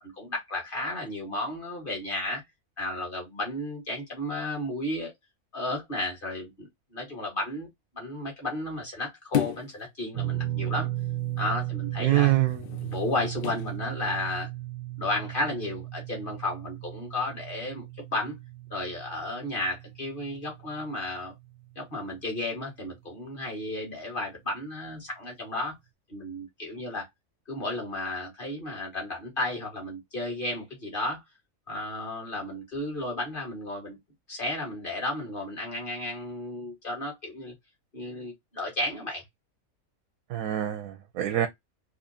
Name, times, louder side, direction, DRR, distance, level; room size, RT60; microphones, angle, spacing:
voice 1, 0.0-2.4 2.8-5.1 5.5-7.7 7.9-10.9 11.4-12.3 12.9-14.5 15.0-17.8 18.1-18.3 18.7-21.3 21.8-25.8 26.1-27.1 27.5-31.2 31.7-34.0 34.3-37.5 37.9-39.2, left 1 dB, 40° left, 1.8 m, -33 dB
sound 1, 9.3-9.8 12.4-13.7 14.3-14.4, left 10 dB, 70° left, 0.5 m, -32 dB
sound 2, 10.1-22.4 22.6-22.9 24.6-24.7, right 15 dB, 60° right, 0.5 m, -36 dB
voice 2, 12.0-12.7 40.3-41.5, right 14 dB, 85° right, 1.1 m, -25 dB
4.2 x 2.6 x 2.6 m
omnidirectional pair, 1.5 m